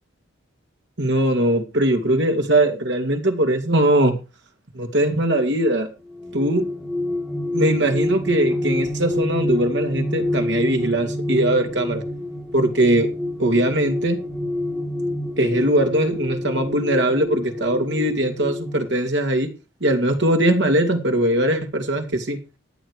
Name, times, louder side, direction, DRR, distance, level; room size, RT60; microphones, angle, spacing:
voice 1, 1.0-4.2 4.7-5.9 6.3-6.7 7.5-12.0 12.5-13.1 13.4-14.2 15.4-19.5 19.8-22.4, right 1 dB, 60° right, 5 dB, 2.5 m, -20 dB
sound 1, 6.1-18.9, left 1 dB, 5° right, 4.3 m, -27 dB
14.5 x 9.3 x 4.9 m, 0.30 s
head